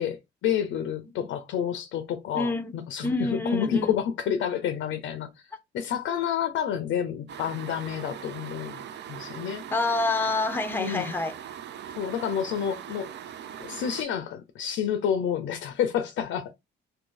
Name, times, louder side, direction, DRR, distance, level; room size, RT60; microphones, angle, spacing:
voice 1, 0.0-9.6 10.7-11.1 12.0-13.1 13.6-16.5, left 9 dB, 80° left, 0.5 m, -29 dB
voice 2, 2.3-2.8 3.0-4.0 9.7-11.3, left 2 dB, 10° left, 0.5 m, -27 dB
sound 1, 7.3-14.0, right 9 dB, 60° right, 0.5 m, -41 dB
2.7 x 2.6 x 3.7 m
cardioid pair, 90°, 20 cm